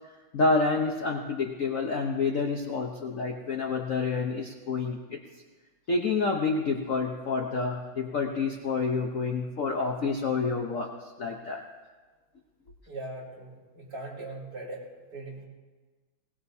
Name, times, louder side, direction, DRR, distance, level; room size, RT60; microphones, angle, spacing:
voice 1, 0.3-5.2 5.9-10.9 11.2-11.6, left 4 dB, 50° left, 1 dB, 1.1 m, -28 dB
voice 2, 12.9-15.4, right 2 dB, 55° right, -5 dB, 4.9 m, -40 dB
21.0 x 19.5 x 2.8 m, 1.3 s
omnidirectional pair, 2.2 m